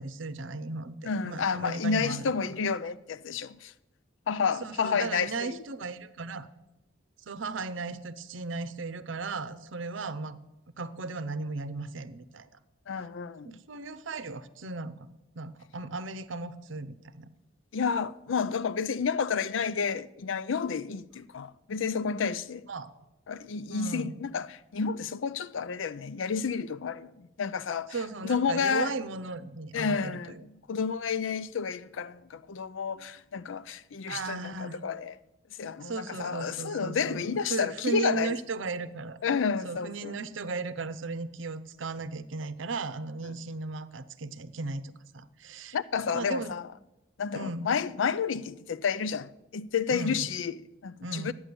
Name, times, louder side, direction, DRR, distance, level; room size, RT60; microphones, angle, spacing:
voice 1, 0.0-2.3 4.6-6.5 7.3-10.4 10.8-12.5 13.4-15.1 15.4-17.3 22.7-22.9 23.7-24.2 27.9-30.4 34.1-34.8 35.8-39.2 39.6-45.8 46.1-46.6 47.3-47.7 49.9-50.2 51.0-51.3, right 3 dB, 85° right, 0.7 m, -36 dB
voice 2, 1.0-3.7 4.3-5.6 12.9-13.6 17.7-22.7 23.3-28.0 28.2-28.9 29.7-30.4 30.7-35.1 35.6-38.4 39.2-40.2 45.7-46.7 47.2-51.3, left 6 dB, 85° left, 0.5 m, -30 dB
11.5 x 8.7 x 6.9 m
head